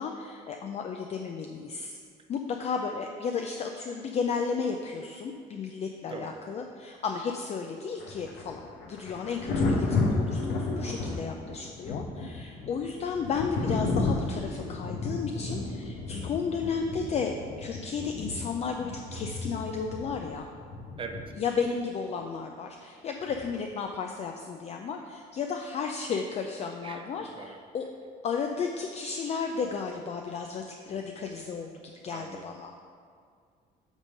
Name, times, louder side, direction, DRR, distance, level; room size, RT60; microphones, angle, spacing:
voice 1, 0.0-2.0 2.3-8.6 8.9-20.5 21.4-27.8 28.2-32.7, left 5 dB, 40° left, 3 dB, 0.4 m, -33 dB
voice 2, 6.1-6.4 21.0-21.2 26.8-27.6 32.1-32.8, right 4 dB, 30° right, 5 dB, 0.7 m, -42 dB
Thunder, 8.0-21.7 23.3-23.5, left 3 dB, 85° left, 1.0 m, -32 dB
8.1 x 3.7 x 5.2 m, 2.1 s
cardioid pair, 110°, 17 cm